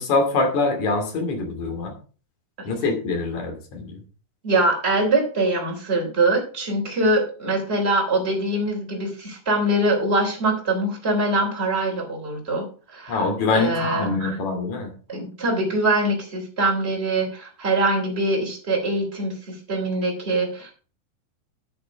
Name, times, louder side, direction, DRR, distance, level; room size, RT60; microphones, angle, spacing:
voice 1, 0.0-1.9 2.7-4.0 13.1-14.9, left 3 dB, 50° left, 4 dB, 3.5 m, -24 dB
voice 2, 4.4-14.4 15.1-20.7, right 2 dB, 15° right, 0 dB, 2.9 m, -23 dB
10.5 x 6.9 x 5.1 m, 0.38 s
omnidirectional pair, 4.8 m